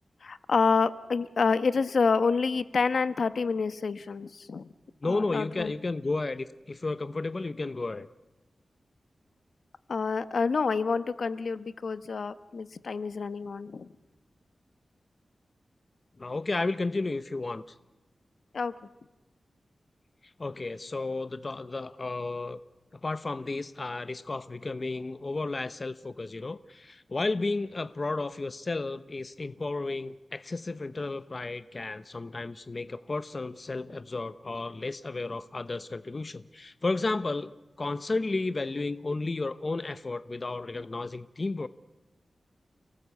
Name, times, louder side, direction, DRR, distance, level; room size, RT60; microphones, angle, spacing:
voice 1, 0.2-4.7 5.0-5.7 9.9-13.9 18.5-18.7, left 4 dB, 70° left, 13 dB, 1.0 m, -28 dB
voice 2, 5.0-8.1 16.2-17.6 20.2-22.6 23.0-41.7, left 3 dB, 40° left, 13 dB, 0.8 m, -33 dB
29.5 x 18.5 x 8.3 m, 1.1 s
wide cardioid pair, 100°, 0 cm